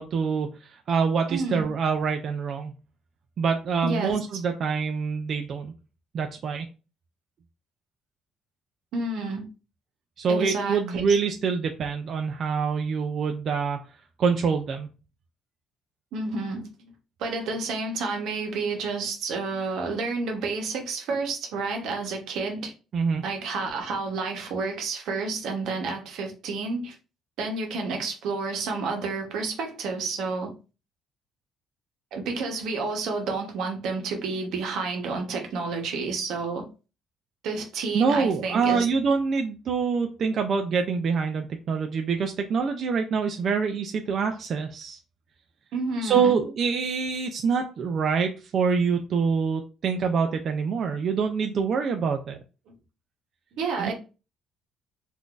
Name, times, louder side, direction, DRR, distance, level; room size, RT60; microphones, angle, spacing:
voice 1, 0.0-2.7 3.4-5.7 6.1-6.7 10.2-13.8 14.2-14.9 22.9-23.2 37.9-45.0 46.0-52.4 53.8-53.9, right 5 dB, 40° right, 0.3 m, -25 dB
voice 2, 1.3-1.7 3.8-4.2 8.9-9.5 10.3-11.2 16.1-16.7 17.2-22.7 23.2-27.0 27.4-30.5 32.1-36.7 37.4-38.9 45.7-46.4 52.7-52.8 53.5-53.9, right 4 dB, 65° right, 0.8 m, -30 dB
3.7 x 2.5 x 2.4 m
cardioid pair, 170°, 0 cm